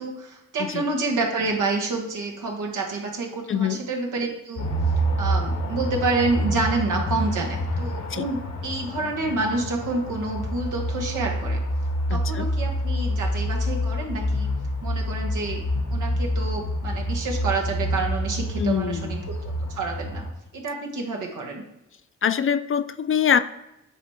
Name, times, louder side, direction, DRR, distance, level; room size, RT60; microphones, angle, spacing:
voice 1, 0.0-4.7 5.0-11.6 12.1-14.5 14.8-20.2 20.5-21.6, right 3 dB, 90° right, 0 dB, 1.3 m, -28 dB
voice 2, 3.5-3.8 8.1-8.3 12.1-12.5 18.6-19.2 22.2-23.4, left 8 dB, 45° left, 13 dB, 0.5 m, -24 dB
sound 1, 4.6-20.3, equal, 85° left, 1.7 m, -27 dB
9.3 x 3.3 x 4.2 m, 0.89 s
supercardioid pair, 45°, 30 cm